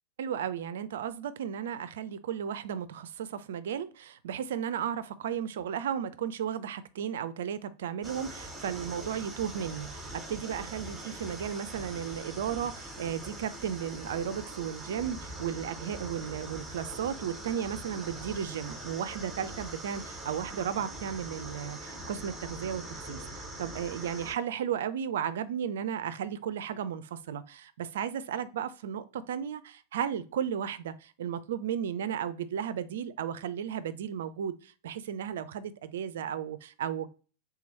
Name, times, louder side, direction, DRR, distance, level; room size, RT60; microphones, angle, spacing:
voice 1, 0.2-37.1, right 8 dB, 60° right, 0.4 m, -34 dB
sound 1, 8.0-24.3, right 1 dB, 10° right, 1.3 m, -42 dB
3.6 x 3.0 x 4.0 m
figure-of-eight pair, 90°, 0 cm